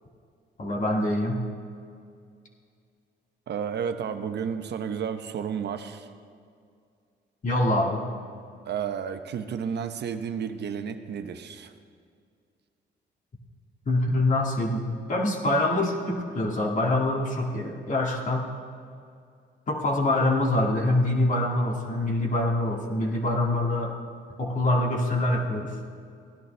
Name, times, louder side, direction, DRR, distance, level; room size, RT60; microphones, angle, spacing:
voice 1, 0.6-1.4 7.4-8.0 13.9-18.4 19.7-23.9 24.4-25.7, left 1 dB, 40° left, -2 dB, 1.8 m, -25 dB
voice 2, 3.5-6.1 8.6-11.7, right 7 dB, 60° right, 8 dB, 0.8 m, -32 dB
16.5 x 10.5 x 3.3 m, 2.3 s
cardioid pair, 90°, 20 cm